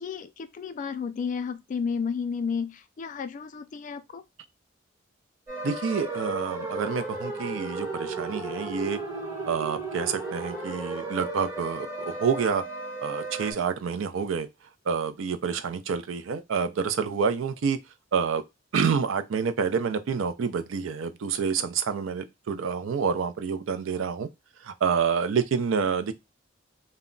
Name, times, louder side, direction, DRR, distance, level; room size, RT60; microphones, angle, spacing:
voice 1, 0.0-4.2, left 6 dB, 40° left, 0.3 m, -32 dB
sound 1, 5.5-13.5, right 2 dB, 15° right, 1.0 m, -34 dB
voice 2, 5.6-9.0 9.5-12.6 13.0-14.5 14.9-17.8 18.1-18.4 18.7-24.3 24.6-26.1, right 6 dB, 85° right, 0.4 m, -28 dB
2.2 x 2.0 x 3.7 m
head